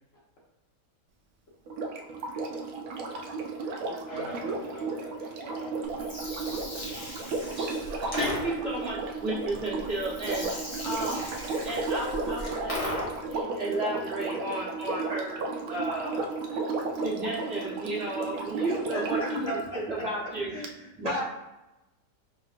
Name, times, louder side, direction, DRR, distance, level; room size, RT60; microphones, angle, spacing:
Sink (filling or washing), 1.7-19.5 20.6-20.7, right 3 dB, 70° right, 0.9 m, -34 dB
voice 1, 4.1-6.1, equal, 50° left, -5 dB, 1.5 m, -43 dB
Gurgling, 5.8-13.4, left 1 dB, 35° left, 0.6 m, -38 dB
voice 2, 7.6-10.5 10.8-11.3 11.6-15.4 15.7-16.2 16.5-16.6 17.0-20.5 21.0-21.2, right 1 dB, 40° right, -7 dB, 1.3 m, -33 dB
voice 3, 18.7-20.1 20.5-21.2, left 1 dB, 85° left, -5 dB, 1.9 m, -38 dB
5.2 x 3.0 x 2.4 m, 0.97 s
omnidirectional pair, 1.8 m